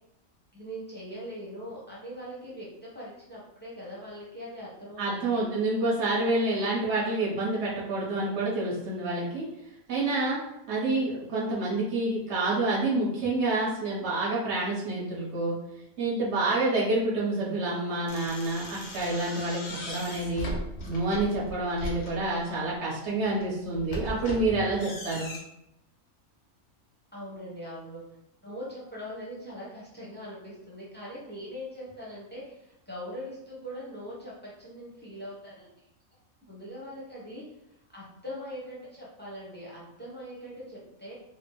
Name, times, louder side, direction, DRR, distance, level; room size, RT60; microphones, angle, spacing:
voice 1, 0.5-5.4 27.1-28.0 28.4-35.7 36.5-37.4 37.9-41.1, equal, 10° left, -7 dB, 0.7 m, -41 dB
voice 2, 5.0-9.5 9.9-10.4 10.7-15.6 16.0-20.5 20.9-25.3, right 2 dB, 55° right, -6 dB, 1.3 m, -28 dB
sound 1, 18.1-22.7 23.2-25.4, equal, 60° left, 0.8 m, -38 dB
3.3 x 2.2 x 3.0 m, 0.83 s
omnidirectional pair, 1.5 m